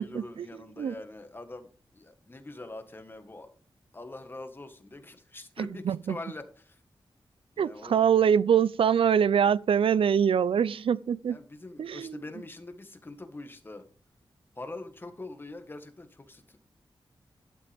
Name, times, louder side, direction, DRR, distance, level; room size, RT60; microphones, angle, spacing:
voice 1, 0.0-3.5 3.9-6.8 7.6-8.1 11.3-13.8 14.5-16.6, left 2 dB, 25° left, 1.6 m, -44 dB
voice 2, 5.6-6.2 7.6-11.4 11.8-12.2, right 8 dB, 85° right, 0.4 m, -24 dB
13.0 x 11.0 x 3.5 m
wide cardioid pair, 165°, 9 cm